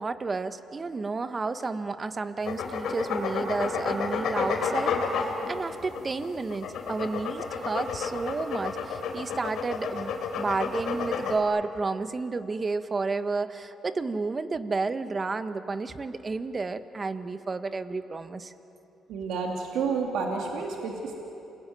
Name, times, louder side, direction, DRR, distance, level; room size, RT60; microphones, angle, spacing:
voice 1, 0.0-5.0 5.5-18.5, right 3 dB, 30° right, 11 dB, 1.3 m, -31 dB
sound 1, 2.4-11.4, left 5 dB, 70° left, 3.5 m, -30 dB
voice 2, 19.1-21.1, right 5 dB, 85° right, 1 dB, 2.7 m, -30 dB
28.5 x 20.5 x 9.4 m, 3.0 s
cardioid pair, 90°, 0 cm